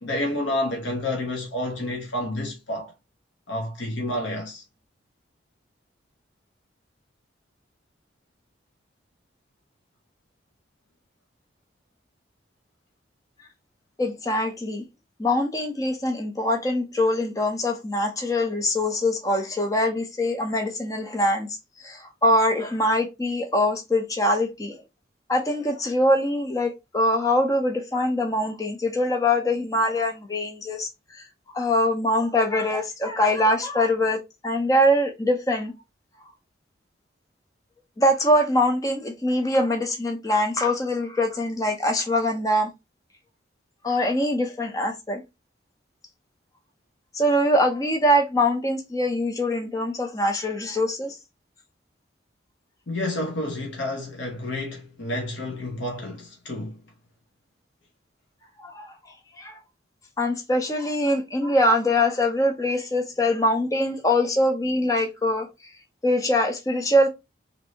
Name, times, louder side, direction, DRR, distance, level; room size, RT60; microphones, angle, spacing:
voice 1, 0.0-2.9 3.5-4.6 52.9-56.8, left 1 dB, 85° left, 0.9 m, -29 dB
voice 2, 14.0-14.8 15.2-24.8 25.3-35.7 38.0-42.7 43.8-45.2 47.1-51.2 58.6-58.9 59.4-59.6 60.2-65.5 66.0-67.1, left 1 dB, 20° left, 0.5 m, -23 dB
3.2 x 2.7 x 2.7 m
head